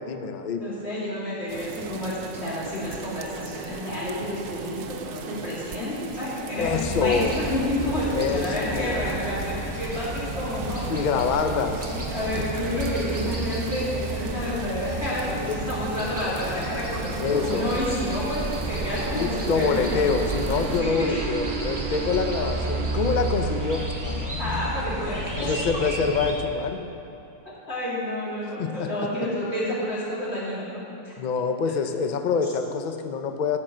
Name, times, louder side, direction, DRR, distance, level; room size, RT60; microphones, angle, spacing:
voice 1, 0.0-0.7 6.6-7.3 8.1-9.0 10.9-12.0 12.4-12.5 15.3-15.6 17.2-17.7 19.1-24.7 25.4-26.9 28.6-29.1 31.2-33.6, left 5 dB, 80° left, 7 dB, 0.4 m, -26 dB
voice 2, 0.6-11.0 11.8-20.0 20.8-21.3 24.4-25.5 27.7-31.1, left 1 dB, 45° left, -8 dB, 3.1 m, -30 dB
sound 1, 1.5-20.8, right 6 dB, 90° right, 1.2 m, -38 dB
sound 2, 6.6-26.3, right 1 dB, 15° right, 1.0 m, -32 dB
sound 3, 16.5-24.8, right 7 dB, 65° right, 0.5 m, -35 dB
10.5 x 6.1 x 7.7 m, 3.0 s
omnidirectional pair, 1.6 m